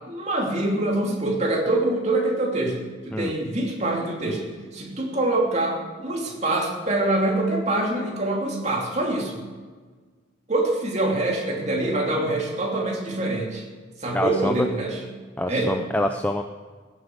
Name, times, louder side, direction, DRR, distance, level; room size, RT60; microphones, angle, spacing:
voice 1, 0.1-2.8 3.0-4.4 4.7-9.4 10.5-13.6 14.0-15.0 15.5-15.7, right 2 dB, 35° right, -1 dB, 2.8 m, -25 dB
voice 2, 14.1-14.7 15.4-16.4, left 1 dB, 10° left, 5 dB, 0.5 m, -25 dB
16.0 x 7.9 x 7.8 m, 1.4 s
head